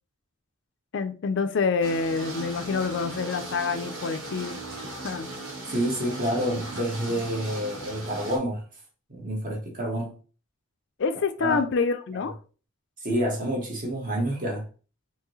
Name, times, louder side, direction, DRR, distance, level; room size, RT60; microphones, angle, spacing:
voice 1, 0.9-4.6 5.0-5.3 11.0-12.3, left 4 dB, 60° left, 0.4 m, -27 dB
sound 1, 1.8-8.4, right 2 dB, 65° right, 1.3 m, -38 dB
voice 2, 5.7-8.6 9.1-10.1 11.4-11.6 13.0-14.6, equal, 40° right, 1.3 m, -28 dB
4.6 x 2.8 x 3.1 m
head